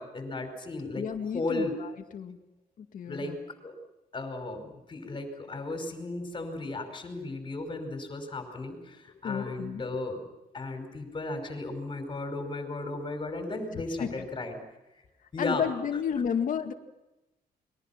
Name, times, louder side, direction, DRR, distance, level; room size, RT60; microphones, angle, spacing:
voice 1, 0.0-1.8 3.1-3.4 3.6-3.7 4.1-10.2 10.5-14.5 15.3-15.7, left 2 dB, 30° left, 6 dB, 5.3 m, -35 dB
voice 2, 1.0-2.4 2.8-3.4 9.2-10.0 14.0-14.2 15.4-16.7, left 7 dB, 55° left, 4 dB, 2.2 m, -32 dB
29.5 x 22.5 x 5.9 m, 0.98 s
cardioid pair, 135°, 16 cm